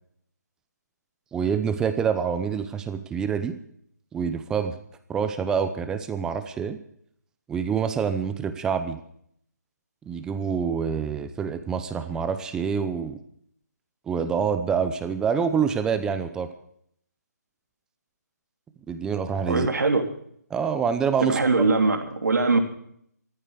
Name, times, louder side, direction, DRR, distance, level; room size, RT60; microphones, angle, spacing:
voice 1, 1.3-3.6 4.1-4.7 5.1-6.8 7.5-9.0 10.1-13.2 14.1-16.5 18.9-19.7 20.5-21.4, right 6 dB, 5° right, 10 dB, 0.7 m, -26 dB
voice 2, 19.5-20.0 21.2-22.6, right 3 dB, 75° right, 5 dB, 3.0 m, -21 dB
14.5 x 13.5 x 6.5 m, 0.67 s
hypercardioid pair, 160°, 9 cm